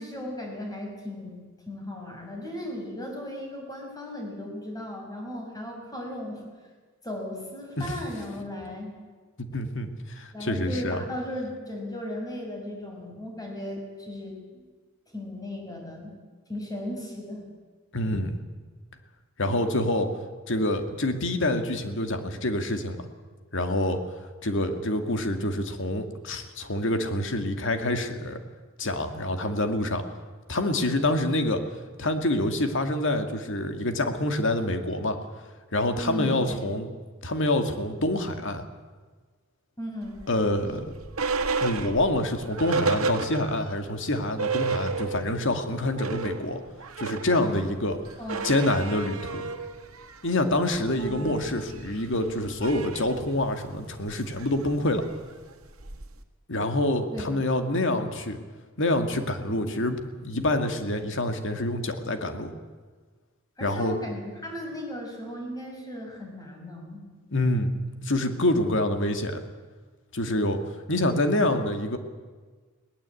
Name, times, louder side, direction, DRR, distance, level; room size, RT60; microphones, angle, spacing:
voice 1, 0.0-6.4 7.0-9.0 10.3-14.7 15.1-16.1 16.5-17.4 35.9-36.6 39.8-40.2 48.2-48.5 51.0-51.3 57.1-57.3 63.6-67.0, left 1 dB, 20° left, 1 dB, 6.2 m, -36 dB
voice 2, 9.5-11.0 17.9-18.5 19.4-20.1 20.5-23.1 23.5-24.0 24.4-28.4 28.8-30.0 30.5-31.6 32.0-35.2 35.7-36.9 37.2-38.7 40.3-40.9 41.6-46.6 47.0-48.0 48.4-49.5 50.2-55.1 56.5-58.4 58.8-62.5 63.6-64.0 67.3-67.7 68.0-69.4 70.1-70.6 70.9-72.0, left 1 dB, 65° left, 7 dB, 2.2 m, -26 dB
sound 1, 40.1-43.8 44.1-44.2 44.4-45.5 45.8-56.2, right 4 dB, 85° right, 1.7 m, -33 dB
21.5 x 18.5 x 8.5 m, 1.4 s
head